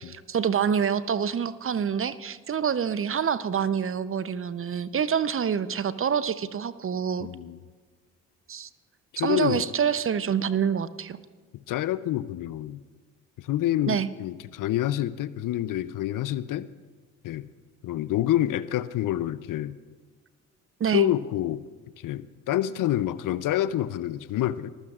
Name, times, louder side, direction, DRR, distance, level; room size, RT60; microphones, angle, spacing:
voice 1, 0.0-7.3 8.5-8.7 9.2-11.2 13.9-14.1 20.8-21.1, right 7 dB, 35° right, 15 dB, 0.7 m, -26 dB
voice 2, 7.2-7.6 9.1-9.7 11.7-12.8 13.4-16.7 17.2-17.5 17.8-19.8 20.9-21.6 22.0-24.7, left 13 dB, 55° left, 16 dB, 0.7 m, -27 dB
24.5 x 14.5 x 2.5 m, 1.5 s
hypercardioid pair, 45°, 38 cm